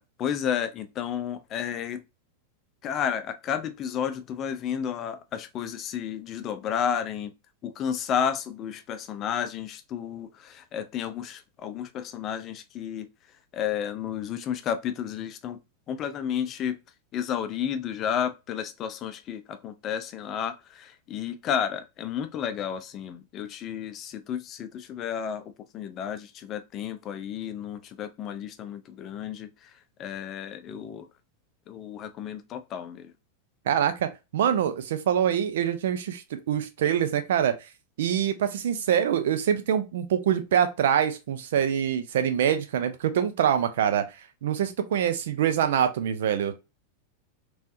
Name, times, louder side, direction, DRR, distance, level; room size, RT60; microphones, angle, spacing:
voice 1, 0.0-2.0 2.8-7.3 7.6-13.1 13.5-15.6 15.9-16.8 17.1-31.1 31.7-33.1, left 8 dB, 35° left, 0.5 m, -32 dB
voice 2, 33.7-37.6 38.0-44.0 44.4-46.5, right 9 dB, 60° right, 0.6 m, -25 dB
3.3 x 3.1 x 2.6 m
figure-of-eight pair, 90°, 0 cm